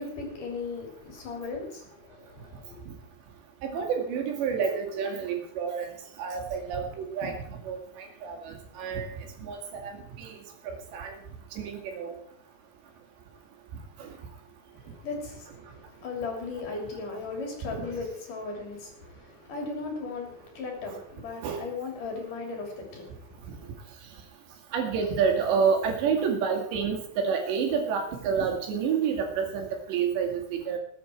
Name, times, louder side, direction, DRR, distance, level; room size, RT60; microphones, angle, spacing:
voice 1, 0.0-2.8 14.8-23.8, left 4 dB, 50° left, 1 dB, 4.5 m, -37 dB
voice 2, 3.6-5.9 6.2-7.4 7.6-9.1 9.4-10.4 10.9-11.2 11.5-12.1 14.0-14.1 17.7-17.8 21.4-21.6 24.7-30.8, right 6 dB, 90° right, 3 dB, 4.4 m, -29 dB
20.5 x 9.4 x 4.5 m, 0.66 s
omnidirectional pair, 4.9 m